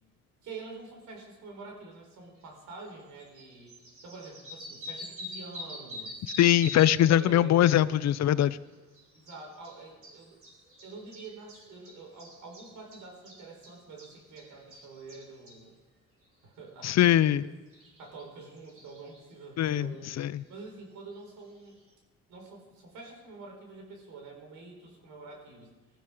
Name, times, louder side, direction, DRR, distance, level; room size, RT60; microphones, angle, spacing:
voice 1, 0.4-3.8 4.0-6.3 7.0-8.0 9.1-10.4 10.8-15.7 16.4-17.5 18.0-20.1 20.5-21.8 22.3-25.7, right 3 dB, 85° right, 2 dB, 4.4 m, -46 dB
sound 1, 2.8-2.9 3.2-7.1 7.4-15.6 17.3-17.4 17.7-19.2 20.0-20.1 21.9-22.0, left 1 dB, 45° right, 5.2 m, -45 dB
voice 2, 6.4-8.6 16.8-17.4 19.6-19.9 20.2-20.4, left 12 dB, 60° left, 17 dB, 0.6 m, -22 dB
19.0 x 14.0 x 5.0 m, 1.2 s
cardioid pair, 90°, 30 cm